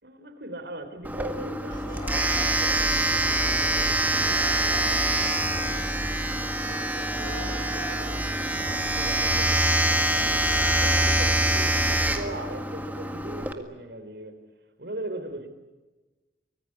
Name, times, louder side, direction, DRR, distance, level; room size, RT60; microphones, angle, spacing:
voice 1, 0.0-5.6 6.6-8.2 8.8-14.4 14.8-15.5, right 1 dB, 75° right, 3.9 m, -40 dB
Domestic sounds home sounds, 1.0-13.5, right 1 dB, 10° right, 1.8 m, -25 dB
sound 1, 1.7-12.6, equal, 25° left, 2.7 m, -36 dB
24.5 x 20.5 x 9.8 m
head